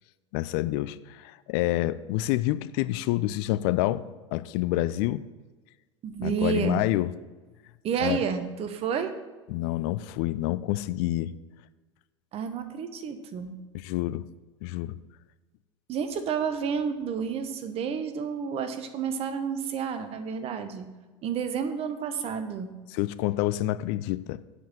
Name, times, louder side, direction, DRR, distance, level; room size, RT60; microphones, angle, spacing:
voice 1, 0.3-4.0 4.3-5.2 6.2-7.1 8.0-8.2 9.5-11.3 13.8-14.3 14.6-15.0 22.9-24.4, left 16 dB, 55° left, 0.4 m, -28 dB
voice 2, 6.0-6.8 7.8-9.1 12.3-13.6 15.9-20.9 21.2-22.7, right 7 dB, 40° right, 1.1 m, -30 dB
7.8 x 5.4 x 7.4 m
figure-of-eight pair, 75°, 15 cm